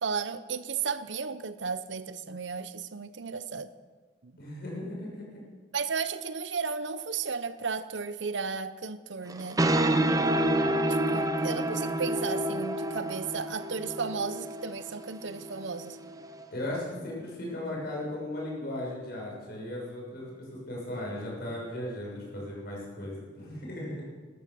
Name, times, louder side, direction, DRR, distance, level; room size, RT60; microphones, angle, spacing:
voice 1, 0.0-3.7 4.2-4.3 5.7-9.6 10.9-16.0, right 5 dB, 70° right, 13 dB, 0.8 m, -34 dB
voice 2, 4.4-5.4 16.5-24.1, left 1 dB, 55° left, -3 dB, 6.4 m, -37 dB
sound 1, 9.3-16.5, right 1 dB, 20° right, 0.8 m, -29 dB
15.5 x 12.5 x 7.0 m, 1.4 s
head